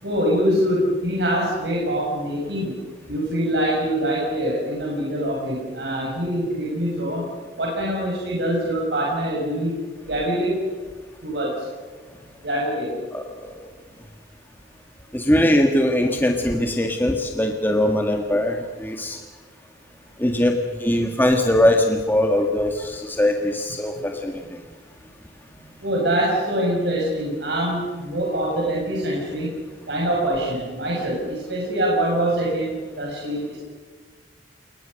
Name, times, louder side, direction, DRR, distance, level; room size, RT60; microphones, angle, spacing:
voice 1, 0.0-2.7 3.1-7.3 7.6-9.7 10.1-10.6 11.2-11.5 12.4-12.9 24.0-24.1 25.8-29.5 29.9-33.6, right 1 dB, 65° right, -3 dB, 6.5 m, -24 dB
voice 2, 13.1-13.5 15.1-19.2 20.2-24.4, left 1 dB, 10° left, 3 dB, 1.6 m, -21 dB
28.5 x 22.0 x 6.6 m, 1.4 s
head